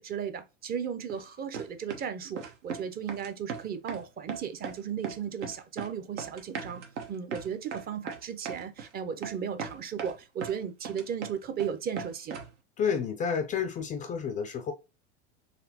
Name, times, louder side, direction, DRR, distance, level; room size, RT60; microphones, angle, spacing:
voice 1, 0.0-6.8 7.1-12.4, right 7 dB, 25° right, 0.6 m, -35 dB
sound 1, 1.1-1.2 1.5-2.1 2.4-2.8 3.1-4.0 4.3-4.8 5.0-5.9 6.2-8.9 9.2-9.3 9.6-10.6 10.8-11.7 12.0-12.5, right 6 dB, 85° right, 1.1 m, -38 dB
voice 2, 12.8-14.7, left 6 dB, 25° left, 0.4 m, -30 dB
4.2 x 3.1 x 2.8 m
hypercardioid pair, 110°, 35 cm